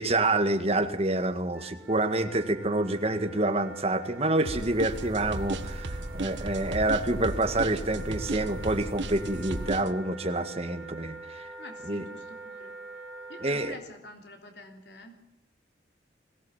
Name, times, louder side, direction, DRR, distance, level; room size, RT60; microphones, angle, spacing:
voice 1, 0.0-11.5 11.9-12.0 13.4-13.7, right 2 dB, 35° right, 7 dB, 1.7 m, -27 dB
Wind instrument woodwind instrument, 1.5-13.7, right 3 dB, 5° right, 2.5 m, -44 dB
sound 1, 4.5-9.8, equal, 50° right, 3.4 m, -38 dB
sound 2, 4.5-9.9, right 3 dB, 75° right, 1.3 m, -35 dB
voice 2, 11.6-12.8 13.3-15.2, left 2 dB, 60° left, 3 dB, 3.4 m, -47 dB
21.5 x 17.0 x 7.3 m, 0.85 s
head